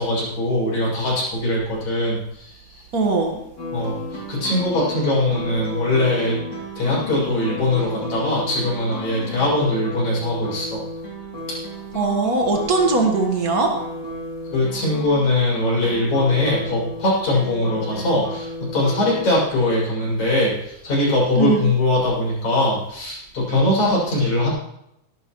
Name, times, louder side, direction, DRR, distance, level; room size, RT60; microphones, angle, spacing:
voice 1, 0.0-2.8 3.7-4.0 4.3-6.4 6.8-10.8 11.5-11.6 14.5-24.5, left 1 dB, 50° left, -5 dB, 8.3 m, -21 dB
voice 2, 2.9-3.4 11.9-13.8 21.3-21.7, right 3 dB, 80° right, 1 dB, 0.8 m, -20 dB
sound 1, 3.6-19.3, left 1 dB, 30° left, 3.3 m, -33 dB
19.5 x 13.0 x 3.2 m, 0.80 s
omnidirectional pair, 4.4 m